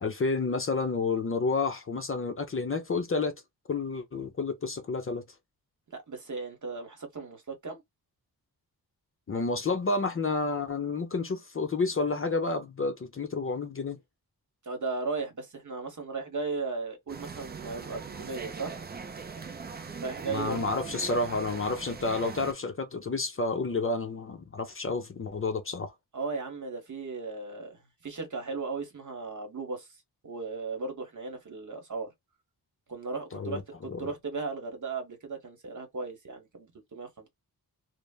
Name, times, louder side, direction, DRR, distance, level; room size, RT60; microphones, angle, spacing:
voice 1, 0.0-3.3 3.7-5.2 9.3-14.0 20.3-25.9 33.3-33.6 33.9-34.1, left 3 dB, 35° left, 0.5 m, -30 dB
voice 2, 5.9-7.8 14.6-18.7 20.0-20.8 26.1-30.0 30.2-32.1 32.9-37.3, right 4 dB, 50° right, 1.1 m, -36 dB
sound 1, 17.1-22.5, right 5 dB, 25° right, 0.4 m, -40 dB
3.2 x 2.0 x 2.2 m
wide cardioid pair, 135°, 38 cm